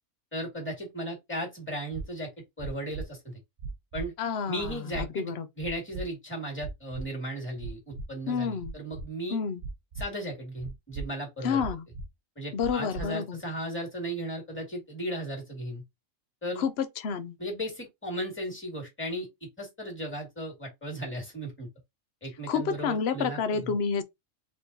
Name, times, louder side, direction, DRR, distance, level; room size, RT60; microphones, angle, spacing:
voice 1, 0.3-2.3 2.6-3.4 3.9-4.1 4.5-5.3 5.6-9.4 10.0-11.6 12.4-15.8 16.4-16.6 17.4-19.3 19.6-21.7 22.2-23.7, right 1 dB, 10° left, 2.1 m, -36 dB
sound 1, 1.9-2.0 2.6-3.0 3.6-4.0 4.6-5.0 5.6-6.0 6.6-7.0 7.6-8.0 8.6-9.0 9.6-10.0 10.6-11.0 11.6-12.0 12.6-13.0, right 4 dB, 50° right, 1.0 m, -37 dB
voice 2, 4.2-5.5 8.3-8.7 9.3-9.6 11.4-11.8 12.5-13.4 16.6-17.4 22.5-24.0, left 6 dB, 60° left, 0.9 m, -29 dB
4.4 x 3.6 x 2.7 m
omnidirectional pair, 1.3 m